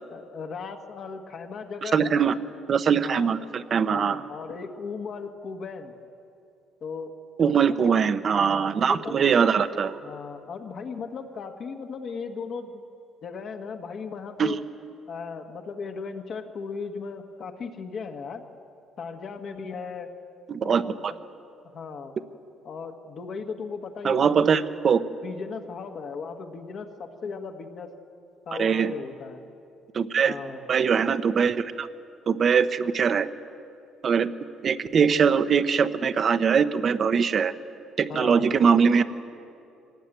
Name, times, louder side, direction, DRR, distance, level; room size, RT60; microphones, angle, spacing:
voice 1, 0.1-2.3 3.0-3.3 3.9-5.9 6.8-7.1 7.8-8.0 8.3-9.4 10.0-12.8 13.2-14.6 15.1-18.4 19.0-20.1 20.6-21.2 21.7-22.1 22.6-24.6 25.2-27.9 28.5-29.4 30.2-30.6 38.1-38.5, left 5 dB, 45° left, 3 dB, 1.4 m, -37 dB
voice 2, 1.8-2.3 2.7-4.2 7.4-9.9 14.4-14.6 20.5-21.1 24.0-25.0 28.6-28.9 29.9-30.3 30.7-31.9 32.3-33.3 34.0-34.3 34.6-37.5 38.0-39.0, right 6 dB, 35° right, 12 dB, 0.8 m, -22 dB
24.0 x 18.5 x 9.0 m, 2.6 s
cardioid pair, 160°, 0 cm